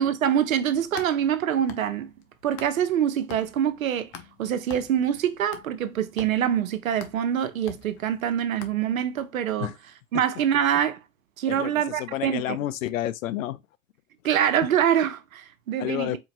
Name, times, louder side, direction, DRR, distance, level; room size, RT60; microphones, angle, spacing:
voice 1, 0.0-2.1 2.4-4.1 4.4-9.7 10.1-11.0 11.4-12.6 14.2-16.2, right 9 dB, 85° right, 0.8 m, -25 dB
sound 1, 0.6-3.0 3.3-9.2, left 8 dB, 50° left, 0.9 m, -45 dB
voice 2, 11.5-13.6 15.8-16.2, left 13 dB, 75° left, 0.6 m, -30 dB
4.3 x 2.8 x 2.9 m
hypercardioid pair, 115°, 40 cm